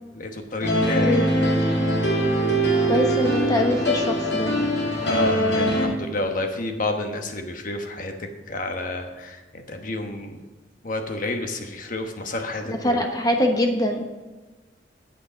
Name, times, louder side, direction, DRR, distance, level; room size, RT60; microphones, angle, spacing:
voice 1, 0.1-1.2 5.0-10.4 10.8-13.0, left 2 dB, 45° left, 5 dB, 1.2 m, -30 dB
sound 1, 0.6-5.9, right 1 dB, 65° left, 2.2 m, -22 dB
voice 2, 2.9-4.7 12.8-14.0, left 1 dB, 20° left, 3 dB, 1.1 m, -23 dB
9.3 x 8.2 x 5.1 m, 1.2 s
head